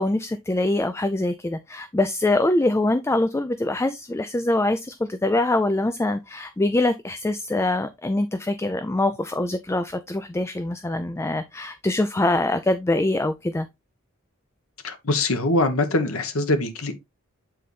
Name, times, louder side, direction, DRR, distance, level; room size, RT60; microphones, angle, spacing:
voice 1, 0.0-13.7, left 2 dB, 10° left, 0.3 m, -24 dB
voice 2, 14.8-16.9, left 2 dB, 80° left, 1.2 m, -23 dB
7.6 x 4.0 x 3.2 m
head